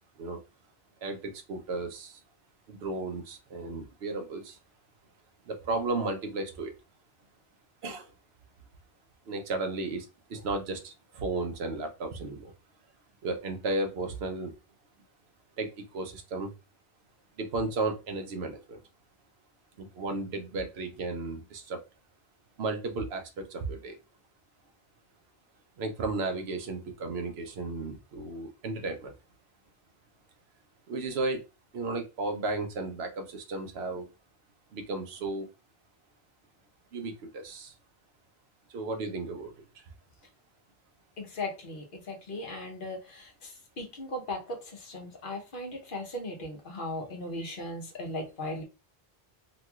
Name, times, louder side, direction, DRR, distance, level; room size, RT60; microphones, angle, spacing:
voice 1, 1.0-2.2 2.7-4.6 5.5-6.7 7.8-8.1 9.3-12.5 13.2-14.5 15.6-16.5 17.4-18.8 19.8-21.8 22.6-24.0 25.8-29.1 30.9-31.4 31.7-34.1 34.7-35.5 36.9-37.7 38.7-39.9 47.4-47.6, right 3 dB, 85° right, 6 dB, 0.9 m, -34 dB
voice 2, 41.2-48.6, left 1 dB, 60° left, 2 dB, 0.9 m, -38 dB
3.0 x 2.9 x 2.3 m, 0.28 s
omnidirectional pair, 1.0 m